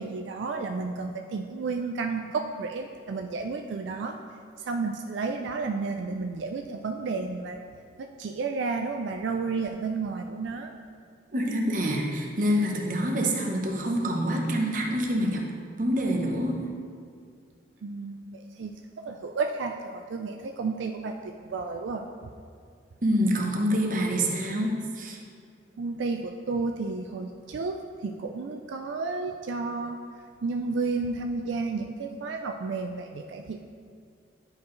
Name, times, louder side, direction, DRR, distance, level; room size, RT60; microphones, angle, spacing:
voice 1, 0.0-4.2 4.7-7.6 8.0-10.7 17.8-22.1 25.8-30.0 30.4-33.7, right 4 dB, 80° right, 4 dB, 0.4 m, -32 dB
voice 2, 11.3-15.4 15.8-16.7 23.0-25.2, equal, 45° right, 1 dB, 0.8 m, -26 dB
10.5 x 4.7 x 3.1 m, 2.3 s
head